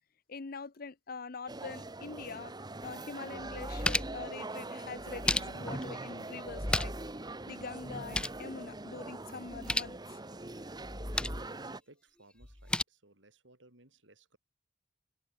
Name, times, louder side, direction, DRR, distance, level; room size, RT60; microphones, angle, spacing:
voice 1, 0.3-2.5 2.8-6.9 7.5-10.2, left 4 dB, 50° left, 0.7 m, -44 dB
sound 1, 1.5-11.8, right 2 dB, 20° right, 1.4 m, -43 dB
sound 2, 2.8-2.9 3.4-4.3 5.0-5.8 6.5-7.1 7.4-7.5 7.8-8.4 9.5-10.0 10.8-11.5 12.4-12.8, left 2 dB, 5° left, 0.3 m, -34 dB
voice 2, 11.0-14.4, right 2 dB, 80° right, 5.4 m, -61 dB
head